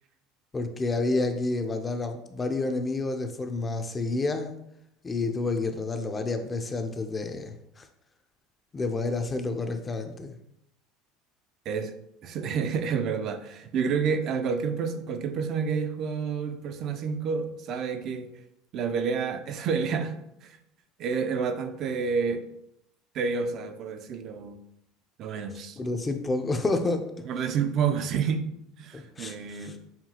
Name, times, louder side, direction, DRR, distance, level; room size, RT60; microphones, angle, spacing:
voice 1, 0.5-4.5 5.0-7.9 8.7-10.3 25.8-27.1 28.9-29.8, left 3 dB, 20° left, 6 dB, 0.5 m, -29 dB
voice 2, 12.2-18.3 18.7-20.1 20.4-20.6 21.0-22.5 23.1-24.6 25.2-25.8 27.2-28.5 28.8-29.8, right 6 dB, 55° right, 7 dB, 0.4 m, -29 dB
5.6 x 2.3 x 2.9 m, 0.78 s
supercardioid pair, 100°, 0 cm